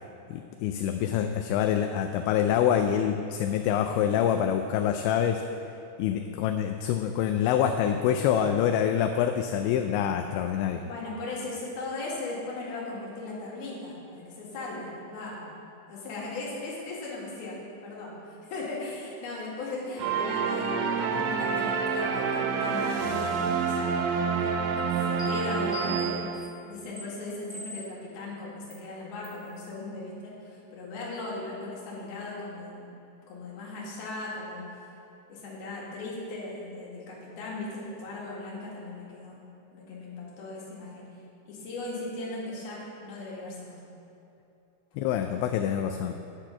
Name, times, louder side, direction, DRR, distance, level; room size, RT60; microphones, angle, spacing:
voice 1, 0.3-5.4 6.0-10.8 45.0-46.1, left 9 dB, 85° left, 6 dB, 2.8 m, -26 dB
voice 2, 10.9-15.5 15.9-26.3 26.7-32.9 33.3-34.9 35.3-39.4 39.7-41.1 41.5-43.8, left 2 dB, 60° left, -5 dB, 3.8 m, -38 dB
sound 1, 20.0-26.6, right 5 dB, 85° right, 2.1 m, -28 dB
sound 2, 25.2-25.3 25.7-26.3 27.0-27.1 27.5-28.0 28.7-28.8 29.2-29.4, right 3 dB, 10° right, 1.8 m, -39 dB
9.8 x 6.7 x 7.2 m, 2.9 s
omnidirectional pair, 5.3 m